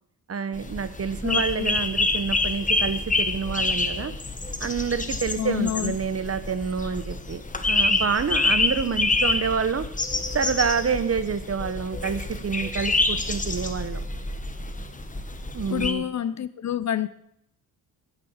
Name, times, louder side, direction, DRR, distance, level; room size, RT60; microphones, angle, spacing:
voice 1, 0.3-4.1 4.6-9.8 10.3-14.0 15.5-16.0, right 6 dB, 40° right, 1.1 m, -28 dB
sound 1, 0.5-15.9, left 3 dB, 20° left, 1.3 m, -27 dB
voice 2, 1.2-1.7 5.4-6.0 15.7-17.1, left 10 dB, 45° left, 0.6 m, -28 dB
9.1 x 8.4 x 7.2 m
supercardioid pair, 60°, 39 cm